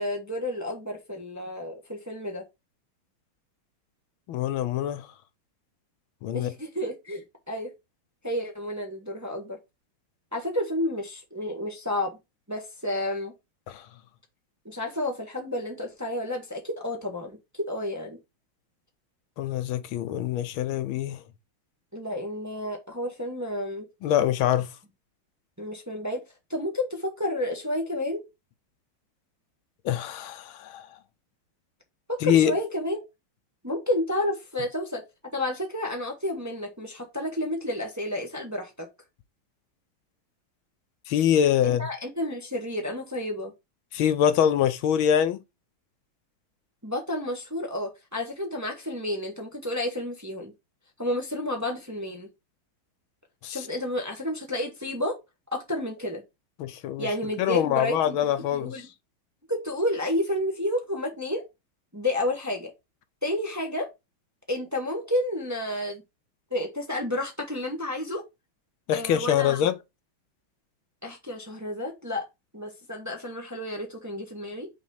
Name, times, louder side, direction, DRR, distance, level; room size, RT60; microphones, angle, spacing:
voice 1, 0.0-2.4 6.3-7.7 8.2-9.6 10.3-12.2 12.5-13.3 14.6-18.2 21.9-23.8 25.6-26.2 26.5-28.2 32.1-33.0 33.6-35.0 35.3-38.9 41.6-43.5 46.8-50.5 51.0-52.3 53.5-55.2 55.5-56.2 57.0-58.2 58.6-58.8 59.5-61.4 61.9-62.7 63.2-63.9 64.5-66.0 66.5-68.2 68.9-69.6 71.0-72.3 72.5-74.7, left 1 dB, 10° right, 1.0 m, -30 dB
voice 2, 4.3-5.1 6.2-6.5 13.7-13.8 19.4-21.2 24.0-24.7 29.8-30.9 32.2-32.5 41.1-41.9 43.9-45.4 53.4-53.6 56.6-57.1 57.4-58.8 68.9-69.7, left 10 dB, 80° left, 1.5 m, -24 dB
6.0 x 3.1 x 5.5 m
omnidirectional pair, 2.2 m